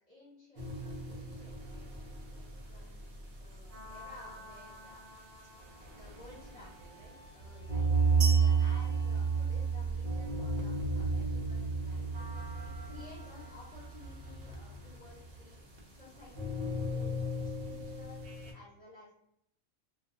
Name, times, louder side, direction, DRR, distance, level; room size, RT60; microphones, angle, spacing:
voice 1, 0.1-1.8 2.3-5.1 5.9-7.9 8.3-15.6 15.9-18.2 18.5-19.1, left 3 dB, 30° left, -8 dB, 1.0 m, -55 dB
sound 1, 0.6-18.5, right 4 dB, 55° right, 0.7 m, -34 dB
Wind instrument woodwind instrument, 6.3-10.6, right 1 dB, 55° left, 0.7 m, -61 dB
sound 2, 8.2-10.2, right 4 dB, 75° right, 1.0 m, -41 dB
2.3 x 2.3 x 2.7 m, 0.75 s
omnidirectional pair, 1.2 m